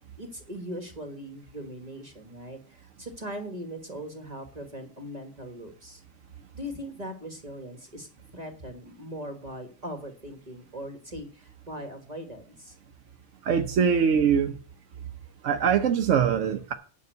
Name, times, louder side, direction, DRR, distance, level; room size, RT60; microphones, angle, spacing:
voice 1, 0.2-6.0 6.5-12.8, equal, 35° right, 1.6 m, -40 dB
voice 2, 13.4-14.5 15.4-16.7, right 7 dB, 90° right, 1.1 m, -23 dB
9.6 x 5.3 x 8.2 m
omnidirectional pair, 1.2 m